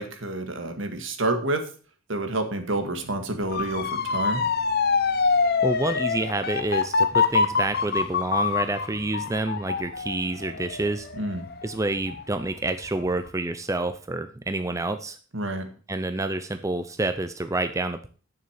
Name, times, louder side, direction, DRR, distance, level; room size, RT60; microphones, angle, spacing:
voice 1, 0.0-1.7 2.1-4.5 11.1-11.4 15.3-15.7, right 2 dB, 65° right, 6 dB, 1.9 m, -28 dB
Motor vehicle (road) / Siren, 3.5-12.4 12.8-13.3, left 5 dB, 50° left, 0.9 m, -25 dB
Bass guitar, 3.7-10.0, left 1 dB, 5° left, 4.8 m, -55 dB
voice 2, 5.6-11.1 11.6-15.2 15.9-18.1, right 2 dB, 15° right, 9 dB, 0.6 m, -28 dB
9.6 x 6.9 x 6.4 m, 0.39 s
head